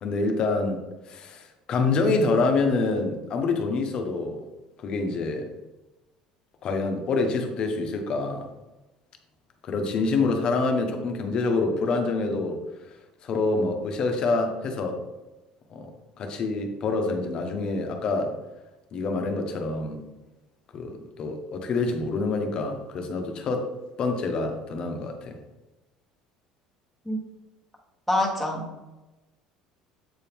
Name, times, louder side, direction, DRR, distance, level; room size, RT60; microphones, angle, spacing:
voice 1, 0.0-4.4 4.8-5.5 6.6-8.5 9.6-12.6 13.2-15.0 15.7-15.9 16.2-18.4 18.9-20.0 20.7-23.7 24.0-25.4, left 3 dB, 35° left, 5 dB, 1.0 m, -26 dB
voice 2, 28.1-28.8, left 1 dB, ahead, -2 dB, 1.2 m, -26 dB
8.0 x 4.4 x 3.6 m, 1.1 s
cardioid pair, 155°, 2 cm